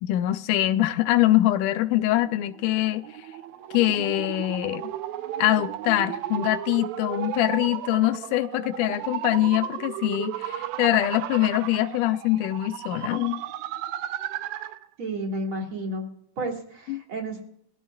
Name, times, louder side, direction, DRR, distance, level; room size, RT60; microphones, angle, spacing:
voice 1, 0.0-3.1 3.7-4.8 5.4-13.4 16.9-17.0, left 14 dB, 85° left, 2.1 m, -23 dB
sound 1, 2.1-14.9, right 12 dB, 75° right, 1.7 m, -34 dB
voice 2, 15.0-16.1 16.4-17.4, right 1 dB, 45° right, 2.4 m, -31 dB
21.5 x 15.0 x 2.3 m
omnidirectional pair, 3.7 m